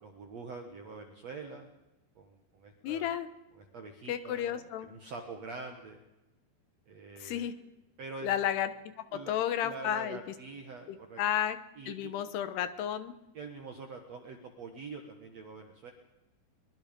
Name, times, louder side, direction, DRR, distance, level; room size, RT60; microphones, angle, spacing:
voice 1, 0.0-1.7 2.2-3.1 3.6-6.0 6.9-7.5 8.0-8.4 9.1-9.3 9.6-11.2 11.8-12.1 13.3-15.9, right 4 dB, 60° right, 4 dB, 1.9 m, -45 dB
voice 2, 2.8-3.3 4.1-4.9 7.2-7.5 8.2-8.7 9.1-10.2 10.9-11.6 11.9-13.1, left 10 dB, 75° left, 11 dB, 2.9 m, -32 dB
23.5 x 23.0 x 5.3 m, 0.98 s
omnidirectional pair, 5.2 m